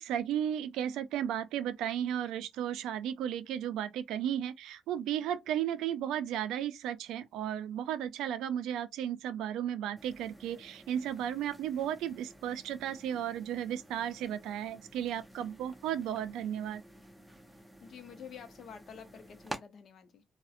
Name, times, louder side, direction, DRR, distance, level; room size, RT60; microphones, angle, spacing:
voice 1, 0.0-16.8, right 10 dB, 90° right, 0.3 m, -34 dB
sound 1, 10.0-19.6, right 1 dB, 5° right, 0.7 m, -51 dB
voice 2, 17.8-20.2, left 7 dB, 60° left, 0.6 m, -49 dB
2.5 x 2.0 x 2.4 m
cardioid pair, 90°, 0 cm